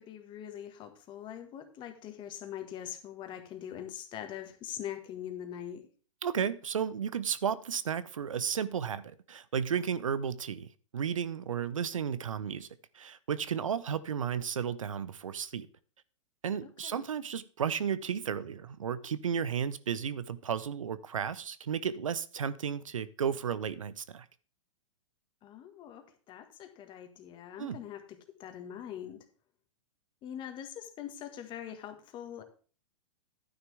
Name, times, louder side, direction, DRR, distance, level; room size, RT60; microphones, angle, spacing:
voice 1, 0.0-5.9 16.6-17.0 25.4-29.2 30.2-32.4, left 10 dB, 30° left, 1.7 m, -43 dB
voice 2, 6.2-12.7 12.9-15.7 16.4-24.3 27.6-27.8, right 7 dB, 80° right, 0.7 m, -33 dB
11.5 x 9.6 x 3.4 m
hypercardioid pair, 115°, 17 cm